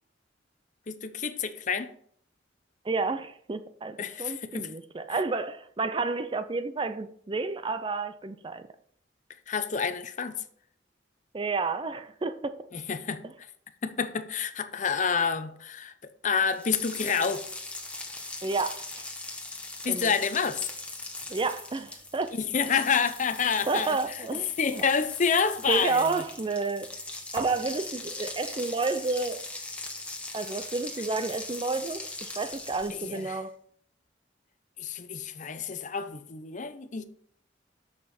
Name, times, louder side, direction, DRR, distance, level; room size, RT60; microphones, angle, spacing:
voice 1, 0.9-1.9 4.0-4.7 9.5-10.4 12.7-13.2 13.8-15.9 16.2-17.4 19.8-20.7 22.4-24.0 24.3-26.1 32.9-33.4 34.8-37.0, left 6 dB, 40° left, 0.6 m, -28 dB
voice 2, 2.8-8.7 11.3-12.5 18.4-19.1 19.9-20.1 21.3-22.3 23.7-24.8 25.7-26.9 27.3-29.4 30.3-33.5, right 3 dB, 25° right, 0.4 m, -30 dB
sound 1, 16.5-33.3, left 2 dB, 5° left, 1.2 m, -40 dB
8.7 x 6.6 x 4.3 m
head